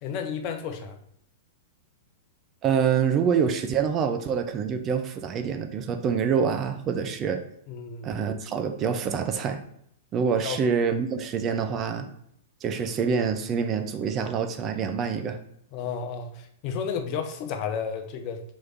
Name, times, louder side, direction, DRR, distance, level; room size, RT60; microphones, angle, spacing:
voice 1, 0.0-1.0 7.7-8.1 10.4-10.6 11.2-11.3 15.7-18.4, left 6 dB, 40° left, 5 dB, 0.6 m, -32 dB
voice 2, 2.6-7.4 8.0-9.6 10.1-12.1 12.6-15.4, right 6 dB, 30° right, 7 dB, 0.5 m, -26 dB
3.1 x 3.1 x 3.7 m, 0.70 s
figure-of-eight pair, 100°, 0 cm